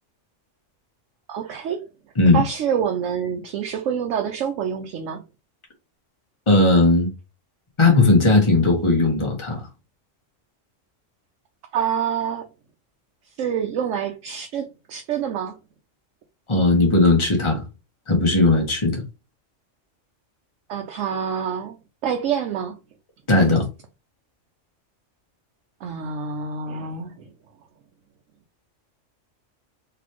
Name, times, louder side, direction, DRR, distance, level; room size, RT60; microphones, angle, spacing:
voice 1, 1.3-1.8 2.3-5.2 11.7-12.5 13.4-15.6 20.7-21.7 22.0-22.8 25.8-27.3, right 7 dB, 75° right, 1.0 m, -26 dB
voice 2, 6.5-7.1 7.8-9.6 16.5-17.6 18.1-19.0 23.3-23.6, left 2 dB, 25° left, 1.3 m, -17 dB
4.0 x 3.3 x 3.0 m
omnidirectional pair, 1.3 m